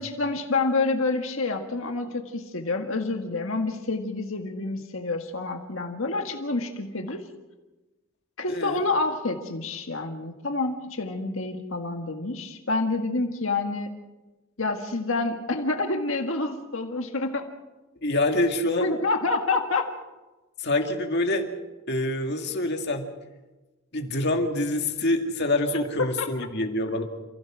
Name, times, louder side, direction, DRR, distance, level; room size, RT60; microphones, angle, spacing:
voice 1, 0.0-7.2 8.4-13.9 14.6-17.5 18.8-19.9 26.2-26.3, left 3 dB, 70° left, 4 dB, 1.8 m, -28 dB
voice 2, 8.5-8.8 18.0-18.9 20.6-21.5 21.9-23.1 23.9-27.0, left 2 dB, 50° left, 4 dB, 2.3 m, -26 dB
29.0 x 16.0 x 6.3 m, 1.1 s
head